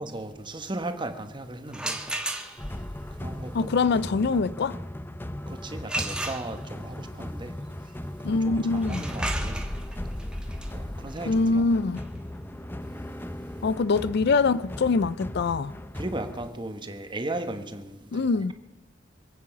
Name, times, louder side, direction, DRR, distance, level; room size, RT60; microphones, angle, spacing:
voice 1, 0.0-2.0 2.4-2.8 3.1-3.7 5.5-7.6 7.8-7.9 8.2-9.7 10.6-11.7 15.9-18.5, right 2 dB, 25° right, 1.2 m, -37 dB
sound 1, 1.7-2.9 5.9-6.9 8.8-14.4, right 2 dB, 5° right, 1.3 m, -36 dB
sound 2, 2.6-16.5, left 1 dB, 10° left, 0.6 m, -37 dB
voice 2, 3.5-4.8 8.2-9.0 11.3-12.0 13.6-15.7 18.1-18.5, left 4 dB, 55° left, 0.4 m, -24 dB
25.5 x 8.6 x 5.8 m
head